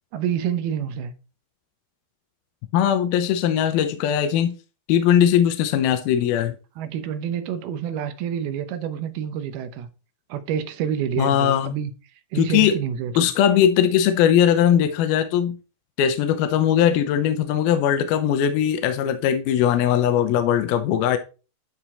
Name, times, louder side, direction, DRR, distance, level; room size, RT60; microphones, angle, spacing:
voice 1, 0.1-1.1 6.8-9.9 10.3-11.9 12.3-13.3, right 8 dB, 80° right, 2.7 m, -28 dB
voice 2, 2.7-4.5 4.9-6.6 11.2-11.8 12.4-12.7 13.2-15.6 16.0-21.2, left 9 dB, 80° left, 2.6 m, -20 dB
12.0 x 4.5 x 4.3 m
omnidirectional pair, 4.6 m